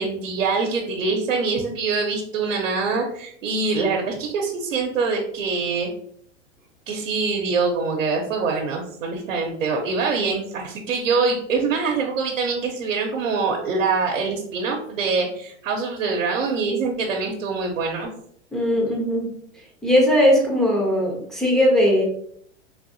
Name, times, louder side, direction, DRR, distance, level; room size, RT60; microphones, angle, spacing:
voice 1, 0.0-5.9 6.9-18.1, right 4 dB, 80° right, 1 dB, 0.8 m, -24 dB
voice 2, 18.5-19.3 19.8-22.0, equal, ahead, -2 dB, 0.5 m, -19 dB
3.6 x 2.7 x 2.6 m, 0.66 s
hypercardioid pair, 130°, 38 cm